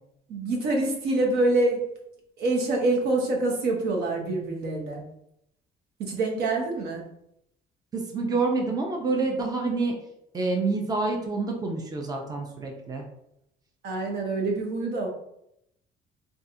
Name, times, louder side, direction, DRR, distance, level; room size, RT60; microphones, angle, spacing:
voice 1, 0.3-1.9 2.4-5.0 6.0-7.1 13.8-15.1, right 2 dB, 75° right, 0 dB, 0.9 m, -26 dB
voice 2, 7.9-9.9 10.3-13.0, right 3 dB, 20° right, 1 dB, 0.6 m, -27 dB
3.9 x 2.4 x 2.7 m, 0.78 s
cardioid pair, 110°, 17 cm